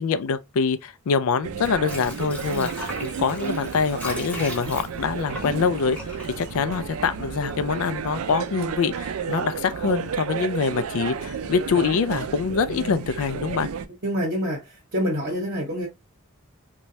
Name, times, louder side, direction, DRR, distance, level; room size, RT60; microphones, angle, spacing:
voice 1, 0.0-6.0 6.4-13.7, left 5 dB, 75° left, 0.4 m, -25 dB
sound 1, 1.4-13.9, right 6 dB, 80° right, 0.4 m, -32 dB
Water / Sink (filling or washing), 1.5-7.4 7.7-7.8, left 2 dB, 5° left, 0.8 m, -38 dB
voice 2, 14.0-15.9, equal, 50° right, 0.9 m, -26 dB
3.1 x 2.2 x 2.6 m
head